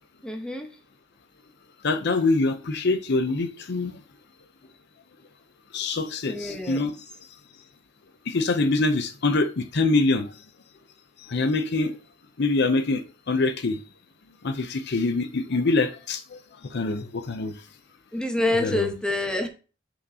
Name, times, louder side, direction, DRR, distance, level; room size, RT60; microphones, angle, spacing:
voice 1, 0.2-0.7 6.3-6.9 18.1-19.5, left 2 dB, 5° left, 1.2 m, -27 dB
voice 2, 1.8-3.9 5.7-7.0 8.3-10.3 11.3-12.0 12.4-13.8 14.4-16.2 16.7-17.6 18.6-18.9, left 3 dB, 60° left, 0.7 m, -24 dB
8.7 x 5.4 x 2.8 m
head